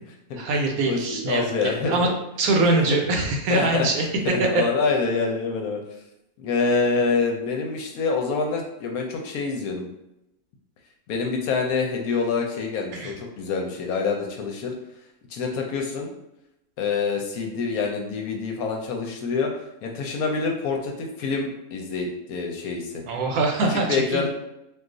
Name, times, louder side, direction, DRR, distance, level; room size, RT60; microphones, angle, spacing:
voice 1, 0.3-1.5 1.9-2.1 2.4-4.1 13.0-13.1 23.1-24.3, right 3 dB, 70° right, 1 dB, 1.0 m, -23 dB
voice 2, 0.8-2.0 2.7-2.8 3.5-3.9 4.2-5.8 6.4-9.9 11.1-14.7 15.3-16.1 16.8-19.5 19.8-22.9 23.7-24.3, left 4 dB, 70° left, 2 dB, 1.0 m, -26 dB
2.5 x 2.3 x 3.7 m, 0.87 s
omnidirectional pair, 1.7 m